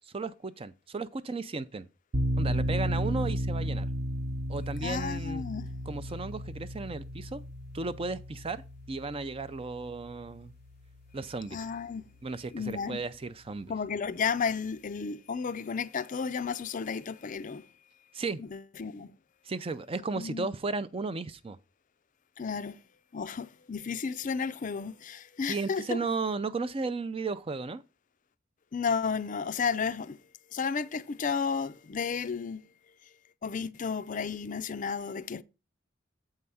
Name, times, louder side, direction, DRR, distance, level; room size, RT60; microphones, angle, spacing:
voice 1, 0.0-1.9 2.4-3.9 4.5-5.4 5.9-7.4 7.7-10.5 11.1-11.6 12.2-13.7 18.1-18.4 19.4-21.6 25.5-27.8, right 3 dB, 30° right, 0.4 m, -35 dB
sound 1, 2.1-11.0, equal, 55° right, 0.7 m, -34 dB
voice 2, 4.8-5.7 11.5-12.1 12.5-13.0 13.7-17.7 18.4-19.2 20.2-20.5 22.4-22.8 23.1-26.0 28.7-30.2 30.5-32.6 33.4-35.4, left 5 dB, 40° left, 0.4 m, -33 dB
7.7 x 4.8 x 5.5 m
head